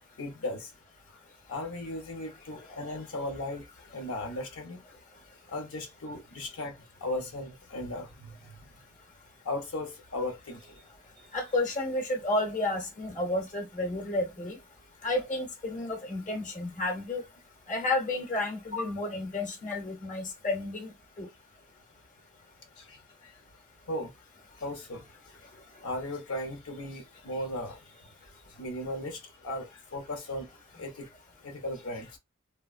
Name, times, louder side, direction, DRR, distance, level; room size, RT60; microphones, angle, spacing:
voice 1, 0.2-0.7 1.1-1.2 1.5-3.7 3.9-4.8 5.5-8.4 9.4-10.8 18.7-18.9 22.8-23.3 23.9-24.1 24.6-25.0 25.8-27.8 28.6-30.5 30.8-31.1 31.4-32.2, left 1 dB, 85° left, 0.7 m, -36 dB
voice 2, 11.3-14.6 15.0-17.2 17.7-20.9 21.2-21.3, left 2 dB, 40° left, 0.9 m, -31 dB
3.4 x 2.1 x 2.3 m
head